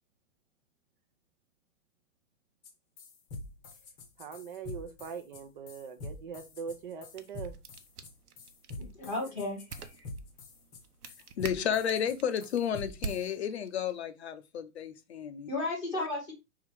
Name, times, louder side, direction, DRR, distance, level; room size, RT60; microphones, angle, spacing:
sound 1, 2.6-2.7 3.0-13.3, left 2 dB, 20° left, 1.0 m, -45 dB
voice 1, 4.2-7.5, right 6 dB, 35° right, 0.8 m, -41 dB
sound 2, 6.9-14.0, right 5 dB, 80° right, 1.2 m, -47 dB
voice 2, 8.8-10.0 11.5-12.0 15.5-16.3, left 2 dB, ahead, 0.4 m, -35 dB
voice 3, 11.4-15.5 16.0-16.1, left 8 dB, 45° left, 0.8 m, -32 dB
5.5 x 3.8 x 4.7 m
hypercardioid pair, 160°, 45 cm